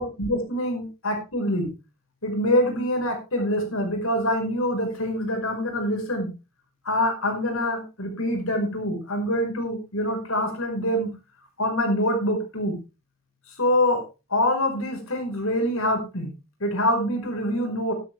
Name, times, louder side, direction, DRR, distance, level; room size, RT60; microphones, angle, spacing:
voice 1, 0.0-1.7 2.2-6.3 6.8-11.1 11.6-12.8 13.6-14.0 14.3-16.3 16.6-17.9, left 1 dB, 75° left, 3 dB, 5.3 m, -25 dB
12.0 x 11.0 x 3.6 m, 0.29 s
head